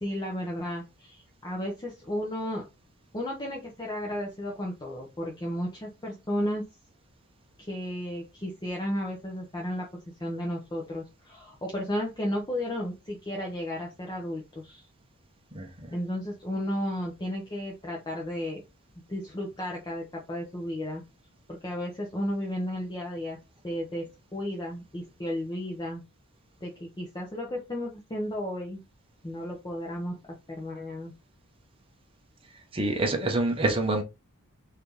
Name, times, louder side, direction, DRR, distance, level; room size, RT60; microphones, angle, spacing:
voice 1, 0.0-2.7 3.1-6.6 7.6-9.9 10.2-14.8 15.9-18.6 19.1-21.0 21.5-23.4 23.6-24.1 24.3-26.0 26.6-28.8 29.2-30.1 30.5-31.1, equal, 20° left, 0.7 m, -33 dB
voice 2, 32.7-34.0, right 2 dB, 25° right, 0.8 m, -26 dB
4.1 x 2.8 x 3.3 m
head